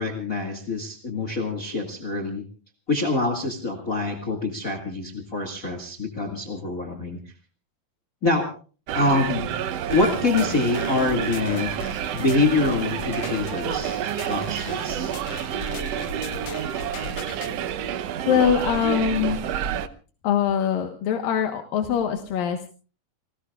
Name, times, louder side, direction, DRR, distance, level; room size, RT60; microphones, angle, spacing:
voice 1, 0.0-2.4 2.9-7.2 8.2-8.5 8.9-9.5 9.9-11.7 12.1-15.2, left 3 dB, 25° left, 3 dB, 2.2 m, -25 dB
sound 1, 8.9-19.9, right 9 dB, 65° right, 1.6 m, -29 dB
sound 2, 9.9-17.5, left 6 dB, 60° left, 2.2 m, -40 dB
voice 2, 18.2-19.4 20.2-22.7, left 8 dB, 85° left, 5 dB, 3.1 m, -23 dB
29.0 x 19.5 x 2.4 m, 0.38 s
omnidirectional pair, 3.9 m